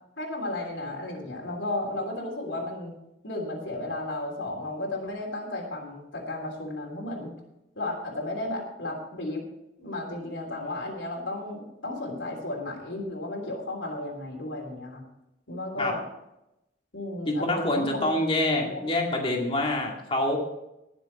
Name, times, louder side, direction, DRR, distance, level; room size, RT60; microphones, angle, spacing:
voice 1, 0.2-2.9 3.2-7.3 7.7-9.4 9.8-15.0 15.5-16.0 16.9-18.1 18.6-18.8, left 2 dB, 75° left, -1 dB, 3.3 m, -34 dB
voice 2, 17.3-20.4, left 1 dB, 30° left, 0 dB, 2.2 m, -26 dB
19.0 x 6.9 x 4.2 m, 0.90 s
head